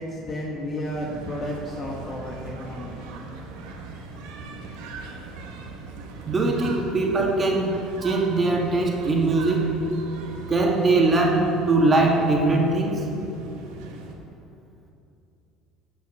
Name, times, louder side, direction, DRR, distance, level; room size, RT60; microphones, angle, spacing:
voice 1, 0.0-3.0, left 1 dB, 35° left, -3 dB, 1.9 m, -32 dB
sound 1, 0.8-14.1, right 3 dB, 80° right, 1.8 m, -40 dB
voice 2, 6.3-9.8 10.5-13.1, right 2 dB, 25° right, 0 dB, 2.3 m, -21 dB
16.5 x 6.1 x 7.8 m, 2.8 s
supercardioid pair, 105°, 0 cm